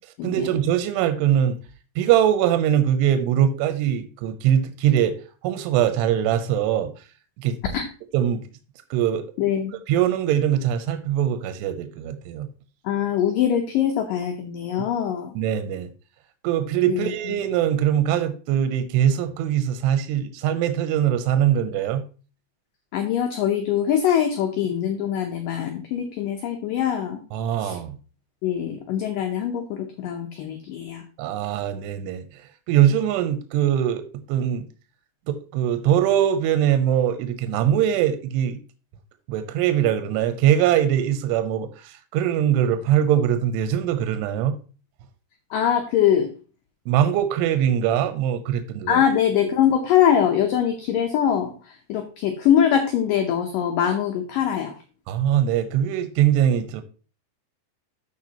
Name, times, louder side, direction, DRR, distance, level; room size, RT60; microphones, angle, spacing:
voice 1, 0.2-1.6 2.0-5.2 5.4-6.9 7.4-7.6 8.1-8.4 8.9-9.2 9.9-12.5 15.4-15.9 16.4-22.0 27.3-28.0 31.2-32.2 32.7-34.6 35.3-38.6 39.3-44.6 46.9-49.0 55.1-56.8, right 10 dB, 85° right, 9 dB, 2.8 m, -22 dB
voice 2, 9.4-9.8 12.8-15.3 16.9-17.1 22.9-27.2 27.6-27.8 28.4-31.0 45.5-46.3 48.9-54.7, left 9 dB, 85° left, 5 dB, 1.9 m, -23 dB
13.5 x 4.7 x 2.9 m, 0.36 s
omnidirectional pair, 4.9 m